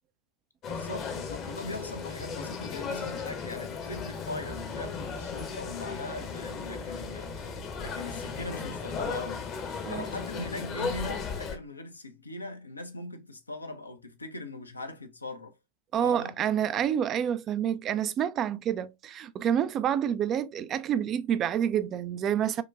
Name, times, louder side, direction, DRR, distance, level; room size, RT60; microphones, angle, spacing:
sound 1, 0.6-11.6, left 5 dB, 35° left, 0.7 m, -36 dB
voice 1, 0.7-9.5 9.9-15.6 16.0-16.3, left 2 dB, 80° left, 0.5 m, -40 dB
sound 2, 4.4-8.8, right 6 dB, 65° right, 1.0 m, -49 dB
voice 2, 15.9-22.6, right 9 dB, 30° right, 0.3 m, -28 dB
4.8 x 2.2 x 2.3 m
figure-of-eight pair, 90°, 0 cm